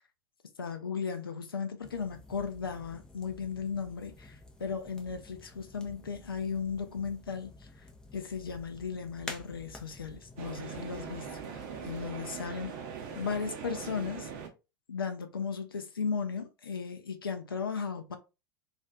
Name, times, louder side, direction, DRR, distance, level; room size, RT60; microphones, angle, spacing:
voice 1, 0.6-7.9 8.1-12.8 13.2-14.3 14.9-18.2, left 6 dB, 75° left, 0.4 m, -36 dB
sound 1, 1.8-12.1, left 2 dB, 5° left, 0.4 m, -50 dB
sound 2, 10.4-14.5, right 6 dB, 45° right, 0.6 m, -41 dB
2.4 x 2.4 x 2.3 m
figure-of-eight pair, 85°, 12 cm